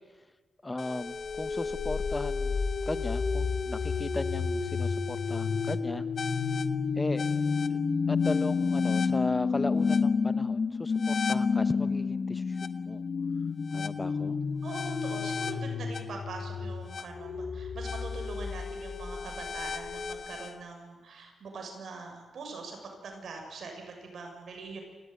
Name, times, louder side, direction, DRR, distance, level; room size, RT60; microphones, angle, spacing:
voice 1, 0.6-2.6 2.9-6.0 6.9-7.3 7.7-7.8 8.1-13.0 13.7-14.4, left 2 dB, 20° left, 12 dB, 1.1 m, -36 dB
sound 1, 0.8-20.5, left 5 dB, 55° left, 1.2 m, -30 dB
voice 2, 14.6-24.8, right 4 dB, 70° right, 3 dB, 6.6 m, -43 dB
28.5 x 14.0 x 9.4 m, 1.3 s
cardioid pair, 75°, 0 cm